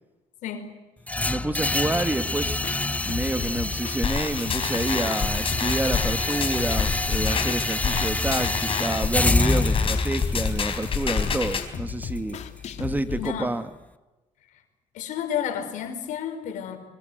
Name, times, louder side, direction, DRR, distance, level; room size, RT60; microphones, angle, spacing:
voice 1, 0.4-0.7 1.7-1.8 13.2-13.5 14.9-16.8, left 9 dB, 85° left, 7 dB, 4.9 m, -31 dB
sound 1, 1.1-13.1, left 2 dB, 10° left, 1.0 m, -27 dB
voice 2, 1.3-2.6 3.0-12.4 12.8-13.7, right 2 dB, 15° right, 11 dB, 1.7 m, -28 dB
sound 2, 2.4-13.3, left 8 dB, 65° left, 2.3 m, -37 dB
sound 3, 4.0-11.6, left 6 dB, 45° left, 4.1 m, -29 dB
25.0 x 24.0 x 8.0 m, 1.1 s
cardioid pair, 100°, 13 cm